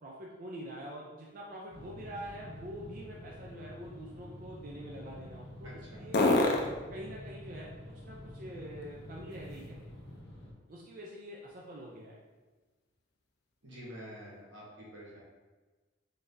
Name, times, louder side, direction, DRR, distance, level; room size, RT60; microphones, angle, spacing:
voice 1, 0.0-6.3 6.9-7.7 8.0-9.8 10.7-12.2, equal, 45° right, -3 dB, 0.4 m, -45 dB
sound 1, 1.2-10.2 10.7-14.5, left 2 dB, 60° left, 0.5 m, -38 dB
sound 2, 1.7-10.5, left 1 dB, 75° left, 1.0 m, -48 dB
voice 2, 5.6-6.0 13.6-15.2, equal, 85° right, -5 dB, 1.3 m, -48 dB
3.9 x 3.4 x 2.6 m, 1.3 s
head